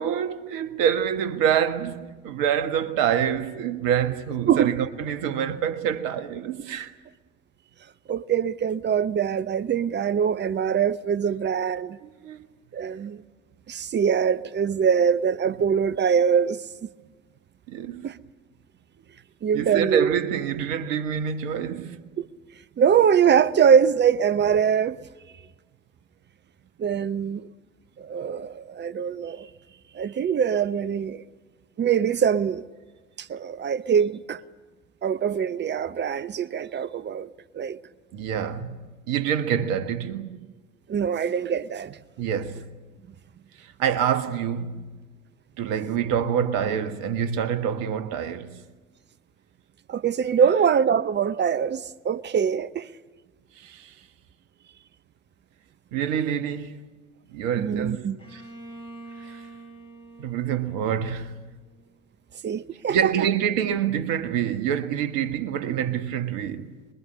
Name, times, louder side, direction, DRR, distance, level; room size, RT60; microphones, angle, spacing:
voice 1, 0.0-6.9 12.0-12.4 17.7-18.1 19.5-22.0 38.1-40.5 42.2-42.8 43.6-45.0 45.6-48.6 53.5-53.9 55.9-56.8 57.3-58.4 59.2-59.4 60.2-61.5 62.9-66.7, right 8 dB, 55° right, 1.5 m, -26 dB
voice 2, 8.1-12.0 12.7-13.2 13.7-16.6 18.0-18.2 19.4-20.1 22.2-22.3 22.8-25.0 26.8-27.5 28.0-29.5 29.9-31.2 31.8-32.6 33.2-34.4 35.0-37.8 40.9-42.0 49.9-52.9 57.6-58.2 62.4-63.1, right 7 dB, 30° right, 0.7 m, -23 dB
Bowed string instrument, 58.2-61.9, right 2 dB, 15° left, 7.0 m, -45 dB
25.5 x 22.0 x 8.7 m
figure-of-eight pair, 65°, 39 cm